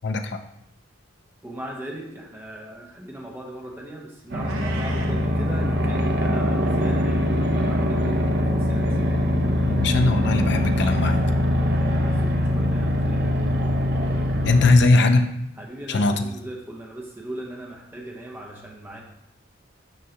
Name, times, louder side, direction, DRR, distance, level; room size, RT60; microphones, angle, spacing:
voice 1, 1.4-9.0 11.7-13.3 15.6-19.0, right 1 dB, 10° right, -1 dB, 0.9 m, -38 dB
sound 1, 4.3-14.8, left 1 dB, 55° right, 0.7 m, -22 dB
Meow, 4.4-5.2, right 4 dB, 85° right, 0.8 m, -38 dB
voice 2, 9.7-11.2 14.4-15.3 15.9-16.1, left 3 dB, 55° left, 6 dB, 0.4 m, -19 dB
6.5 x 5.4 x 2.9 m, 0.79 s
head